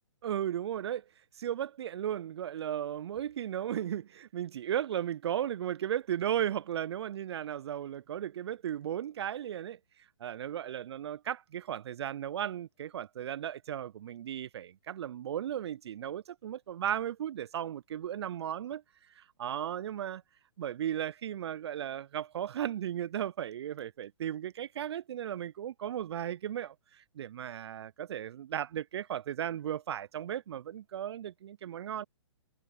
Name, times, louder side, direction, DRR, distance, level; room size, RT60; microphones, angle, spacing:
voice 1, 0.2-1.0 1.3-9.8 10.2-18.8 19.1-20.2 20.6-32.1, right 10 dB, 55° right, 0.4 m, -35 dB
figure-of-eight pair, 130°, 16 cm